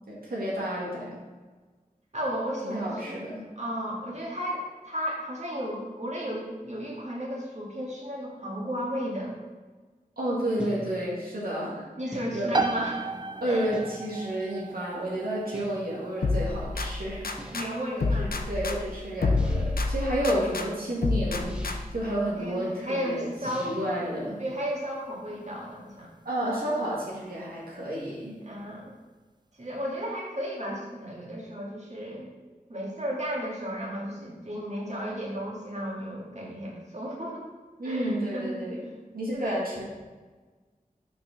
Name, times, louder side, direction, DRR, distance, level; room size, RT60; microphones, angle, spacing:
voice 1, 0.1-1.2 2.6-3.5 10.2-11.9 12.3-12.5 13.4-17.6 18.0-23.3 23.6-24.4 26.3-28.4 37.8-38.8 39.1-39.8, right 1 dB, 80° right, -6 dB, 1.8 m, -31 dB
voice 2, 2.1-3.2 3.6-9.3 12.0-13.0 13.5-13.7 17.5-18.3 22.4-23.8 24.4-26.1 28.4-28.9 29.6-32.3 32.7-37.4 37.8-38.6 39.3-39.6, equal, 50° right, -4 dB, 2.0 m, -34 dB
sound 1, 10.6-11.2 12.1-12.8 13.7-14.3 15.5-16.0 17.4-17.9 19.4-19.9 21.5-22.0 23.5-24.0, equal, 5° right, 1.0 m, -43 dB
sound 2, 12.5-27.0, right 3 dB, 30° right, 0.4 m, -38 dB
sound 3, 16.2-17.7 18.0-20.7 21.0-22.0, left 3 dB, 75° left, 0.6 m, -28 dB
6.0 x 4.6 x 5.9 m, 1.3 s
wide cardioid pair, 65°, 15 cm